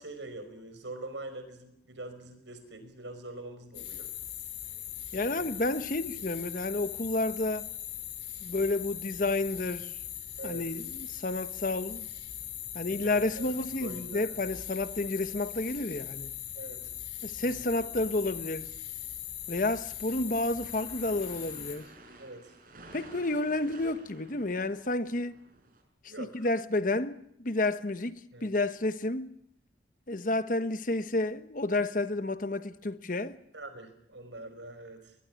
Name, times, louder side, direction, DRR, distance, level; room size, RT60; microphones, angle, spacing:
voice 1, 0.0-4.1 5.1-5.6 10.4-10.7 12.9-13.5 13.8-14.4 16.6-16.9 17.4-17.7 22.2-22.5 26.1-26.5 28.3-28.5 33.5-35.2, right 2 dB, 75° right, 5.3 m, -44 dB
sound 1, 3.7-21.8, left 11 dB, 65° left, 4.2 m, -40 dB
voice 2, 5.1-7.7 8.4-9.9 10.4-12.1 12.7-16.3 17.2-18.7 19.5-21.9 22.9-25.4 26.2-29.3 30.1-33.4, left 2 dB, 45° left, 1.1 m, -31 dB
sound 2, 20.2-25.8, right 2 dB, 50° right, 5.3 m, -53 dB
22.0 x 21.0 x 10.0 m
head